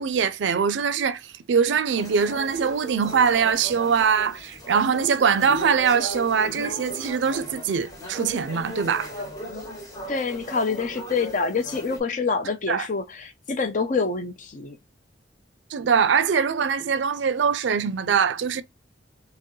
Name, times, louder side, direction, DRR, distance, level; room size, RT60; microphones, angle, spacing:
voice 1, 0.0-9.1 12.7-12.9 15.7-18.6, right 6 dB, 70° right, 0.4 m, -22 dB
sound 1, 2.0-12.0, right 1 dB, 20° left, 1.0 m, -37 dB
voice 2, 10.1-14.8, left 4 dB, 45° left, 0.6 m, -26 dB
4.4 x 2.1 x 3.1 m
head